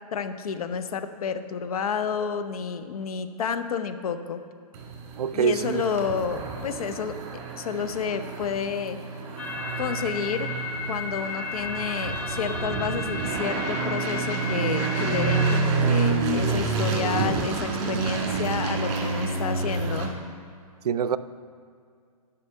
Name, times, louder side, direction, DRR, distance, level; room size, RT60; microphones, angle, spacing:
voice 1, 0.1-4.4 5.3-7.2 7.6-9.0 9.8-10.5 10.9-20.1, left 6 dB, 70° left, 10 dB, 0.8 m, -30 dB
sound 1, 4.7-20.1, right 4 dB, 45° right, 1.9 m, -28 dB
voice 2, 5.2-5.8 20.8-21.2, right 7 dB, 90° right, 15 dB, 0.4 m, -24 dB
sound 2, 9.4-15.6, left 4 dB, 5° left, 0.4 m, -34 dB
9.9 x 5.7 x 5.4 m, 2.2 s
hypercardioid pair, 145°, 19 cm